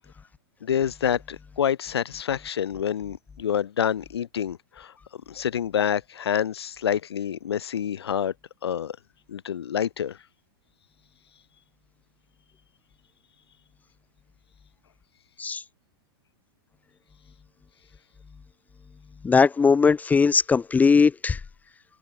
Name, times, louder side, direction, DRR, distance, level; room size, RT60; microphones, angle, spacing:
voice 1, 0.6-4.9 5.3-8.3 8.6-9.0 9.3-10.2, left 9 dB, 90° left, 5.0 m, -27 dB
voice 2, 19.2-21.4, left 5 dB, 10° left, 1.3 m, -19 dB
hypercardioid pair, 135°, 13 cm